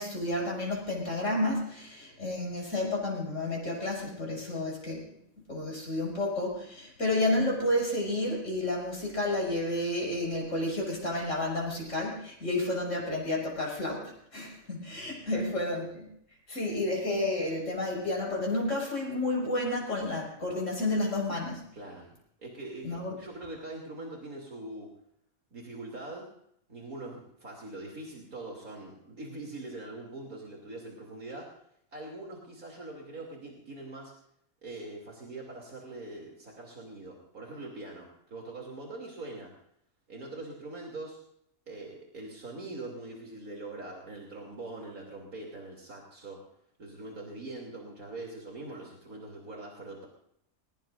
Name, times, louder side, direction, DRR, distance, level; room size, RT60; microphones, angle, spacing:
voice 1, 0.0-5.0 5.5-16.1 16.5-21.6 22.8-23.2, left 1 dB, 55° left, -2 dB, 7.1 m, -31 dB
voice 2, 21.7-22.1 22.4-24.9 25.5-26.3 26.7-31.5 31.9-34.1 34.6-39.5 40.1-41.2 41.7-46.4 46.8-50.1, right 2 dB, 75° right, -1 dB, 3.5 m, -42 dB
21.5 x 20.0 x 2.6 m, 0.71 s
omnidirectional pair, 1.5 m